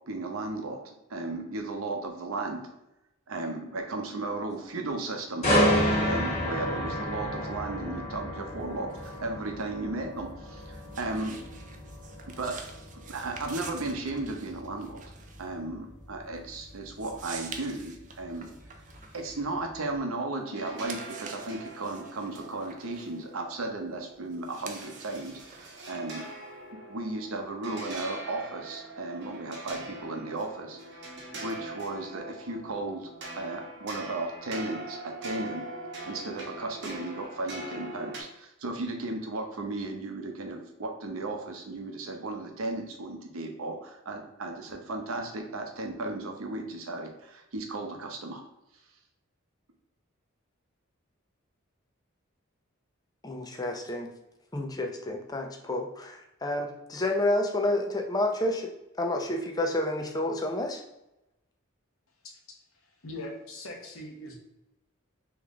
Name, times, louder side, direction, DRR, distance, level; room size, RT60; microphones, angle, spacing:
voice 1, 0.1-0.8 1.1-2.6 3.3-5.8 6.1-11.4 12.3-12.5 13.1-15.0 15.4-18.5 19.1-26.2 26.9-33.1 33.3-35.6 36.0-48.4, right 2 dB, 90° right, 3 dB, 0.8 m, -35 dB
sound 1, 5.4-19.3 19.7-19.9, equal, 35° left, 1.3 m, -31 dB
sound 2, 8.5-20.2 20.6-26.7, right 5 dB, 40° right, 0.5 m, -48 dB
sound 3, 20.5-38.2, right 2 dB, 55° right, 1.0 m, -42 dB
voice 2, 53.2-54.1 54.5-60.8, left 1 dB, 20° left, 2 dB, 0.5 m, -30 dB
voice 3, 62.8-64.4, left 1 dB, 90° left, 1 dB, 1.0 m, -41 dB
3.6 x 3.1 x 3.6 m, 0.90 s
head